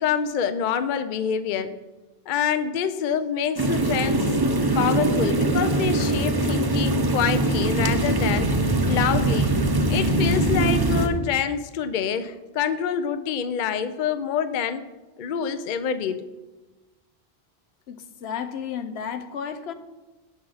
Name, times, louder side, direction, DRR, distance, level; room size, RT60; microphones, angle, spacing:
voice 1, 0.0-1.7 2.3-4.3 4.7-8.5 8.9-9.5 9.9-14.8 15.2-16.2, left 7 dB, 60° left, 0.7 m, -26 dB
sound 1, 3.6-11.1, right 2 dB, 25° right, 0.7 m, -22 dB
voice 2, 17.9-19.7, left 7 dB, 90° left, 1.0 m, -33 dB
16.5 x 5.7 x 4.0 m
omnidirectional pair, 1.0 m